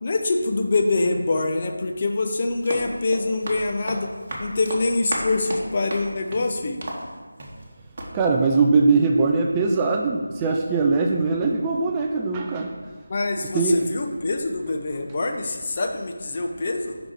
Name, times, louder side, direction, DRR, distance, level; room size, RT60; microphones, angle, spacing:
voice 1, 0.0-4.1 4.4-6.9 13.1-17.0, left 3 dB, 30° left, 4 dB, 0.6 m, -25 dB
Run, 2.4-7.7 8.0-8.1, right 1 dB, 30° right, 1.2 m, -34 dB
voice 2, 8.1-12.7 13.5-13.8, right 4 dB, 15° right, 1 dB, 0.3 m, -21 dB
6.1 x 5.2 x 4.6 m, 1.4 s
figure-of-eight pair, 165°, 0 cm